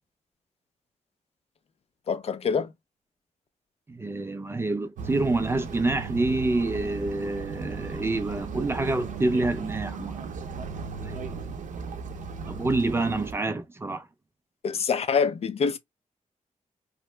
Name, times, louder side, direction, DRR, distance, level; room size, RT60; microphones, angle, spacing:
voice 1, 2.1-2.7 14.6-15.8, left 6 dB, 50° left, 0.4 m, -25 dB
voice 2, 3.9-10.2 11.0-11.4 12.5-14.1, right 2 dB, 20° right, 0.3 m, -27 dB
sound 1, 5.0-13.3, right 5 dB, 75° right, 0.6 m, -36 dB
2.8 x 2.1 x 3.1 m
wide cardioid pair, 160°, 13 cm